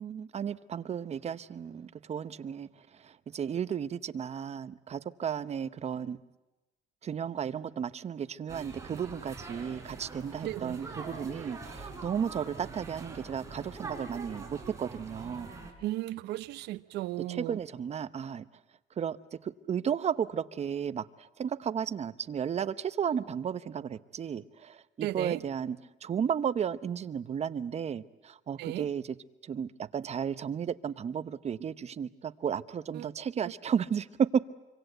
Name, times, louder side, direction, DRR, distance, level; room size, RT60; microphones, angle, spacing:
voice 1, 0.0-2.7 3.0-6.2 7.0-15.5 17.3-18.4 19.0-19.2 19.4-29.2 29.5-34.5, right 7 dB, 40° right, 0.9 m, -33 dB
sound 1, 8.5-15.7, right 3 dB, 15° right, 4.9 m, -44 dB
voice 2, 10.4-10.8 15.8-17.6 25.0-25.4 28.6-28.9 32.9-33.1, right 16 dB, 85° right, 0.8 m, -35 dB
25.5 x 25.5 x 8.0 m
cardioid pair, 110°, 17 cm